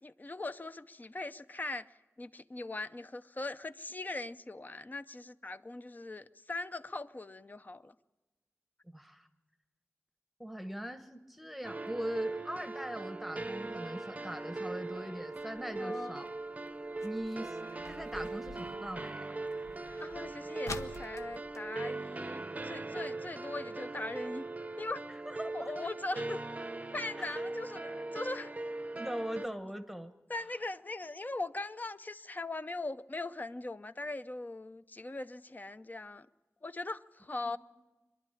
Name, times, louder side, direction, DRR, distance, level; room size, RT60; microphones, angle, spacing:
voice 1, 0.0-1.9 2.2-7.9 15.8-16.2 20.0-24.4 24.8-25.0 25.5-26.4 26.9-28.5 30.3-36.3 36.6-37.6, left 2 dB, 35° left, 0.6 m, -40 dB
voice 2, 8.9-9.3 10.4-16.3 17.0-17.6 17.9-19.3 25.3-25.9 27.2-27.4 28.9-30.1 37.4-37.6, right 1 dB, ahead, 1.0 m, -41 dB
sound 1, 11.6-29.5, right 2 dB, 30° right, 0.6 m, -40 dB
sound 2, 13.5-22.8 23.1-23.2 23.5-23.8 24.3-24.4 25.0-25.1 25.4-25.5 25.8-25.9, left 3 dB, 80° left, 1.0 m, -49 dB
23.5 x 11.5 x 9.9 m
wide cardioid pair, 85°, 5 cm